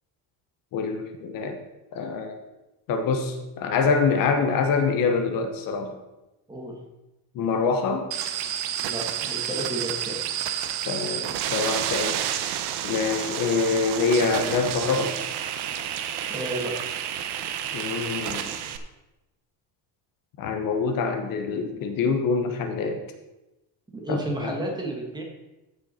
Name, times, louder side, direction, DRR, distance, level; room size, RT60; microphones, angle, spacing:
voice 1, 0.7-1.6 1.9-2.4 2.9-5.9 7.3-8.1 10.8-12.2 12.8-15.2 17.7-18.5 20.4-23.0 24.1-24.6, left 4 dB, 50° left, 5 dB, 1.1 m, -25 dB
sound 1, 8.1-18.8, right 10 dB, 65° right, 0.9 m, -30 dB
voice 2, 8.8-10.2 16.3-16.7 23.9-25.2, right 1 dB, 10° right, 0 dB, 1.3 m, -32 dB
14.5 x 5.6 x 4.3 m, 1.0 s
cardioid pair, 180°, 43 cm